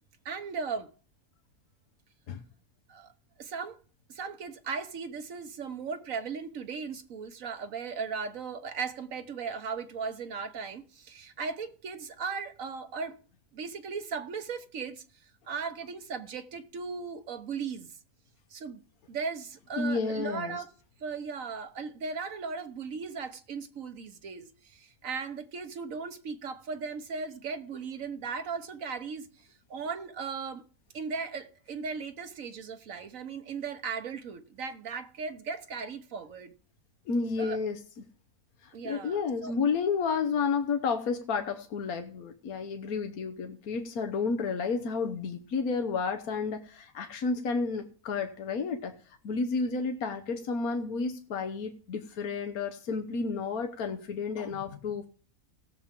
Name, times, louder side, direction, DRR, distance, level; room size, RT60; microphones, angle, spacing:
voice 1, 0.2-0.9 2.9-3.1 3.4-3.8 4.1-13.2 13.5-15.0 15.5-17.9 18.5-18.8 19.1-20.7 21.0-29.3 29.7-30.6 30.9-36.5 37.4-37.6 38.7-39.6, right 5 dB, 65° right, 1.5 m, -37 dB
voice 2, 19.8-20.6 37.1-37.8 38.6-48.9 49.2-55.1, left 5 dB, 80° left, 1.5 m, -31 dB
18.0 x 7.2 x 3.7 m
omnidirectional pair, 1.5 m